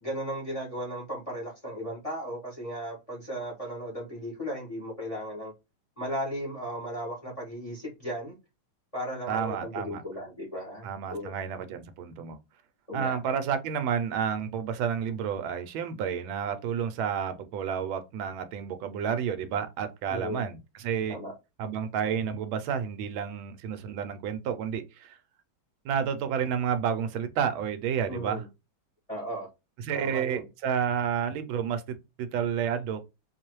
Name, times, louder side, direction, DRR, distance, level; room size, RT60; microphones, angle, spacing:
voice 1, 0.0-5.5 6.0-8.3 8.9-11.3 12.9-13.2 20.1-20.5 21.1-21.3 28.1-28.5 29.1-29.5 29.9-30.5, equal, 20° left, 1.4 m, -36 dB
voice 2, 9.3-10.0 10.8-12.4 12.9-21.2 21.6-25.2 25.8-28.4 29.8-33.0, right 7 dB, 80° right, 1.3 m, -30 dB
3.9 x 2.9 x 3.0 m
omnidirectional pair, 2.2 m